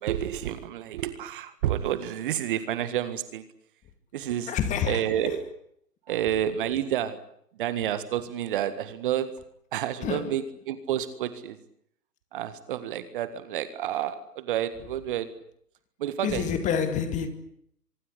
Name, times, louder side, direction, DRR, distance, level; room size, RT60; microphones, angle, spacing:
voice 1, 0.0-3.4 4.1-4.5 4.8-5.4 6.1-7.2 7.6-9.3 9.7-11.6 12.3-15.3 16.0-16.5, right 11 dB, 35° right, 1.7 m, -29 dB
voice 2, 4.5-5.3 10.0-10.3 16.2-17.3, left 7 dB, 15° left, 2.2 m, -28 dB
24.5 x 23.5 x 8.4 m
figure-of-eight pair, 140°, 47 cm